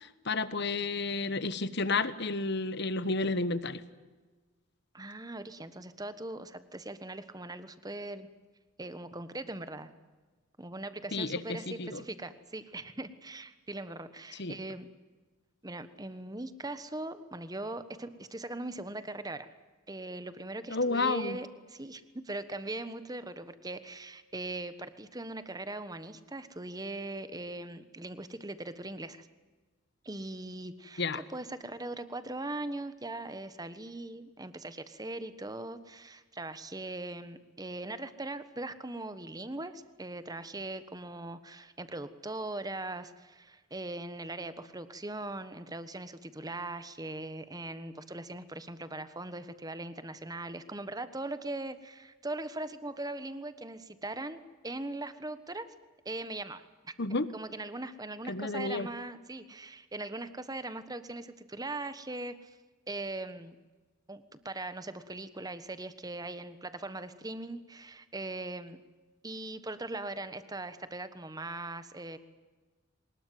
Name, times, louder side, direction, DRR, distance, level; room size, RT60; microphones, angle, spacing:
voice 1, 0.0-3.8 11.1-12.0 14.4-14.6 20.7-21.4 31.0-31.2 57.0-57.3 58.3-58.9, left 3 dB, 55° left, 14 dB, 1.3 m, -31 dB
voice 2, 4.9-8.3 8.8-9.9 10.6-14.9 15.6-19.5 19.9-29.3 30.0-55.7 56.0-56.9 57.3-62.5 62.9-63.6 64.1-68.8 69.2-72.2, right 2 dB, 20° right, 12 dB, 1.3 m, -40 dB
24.0 x 20.5 x 9.4 m, 1.3 s
head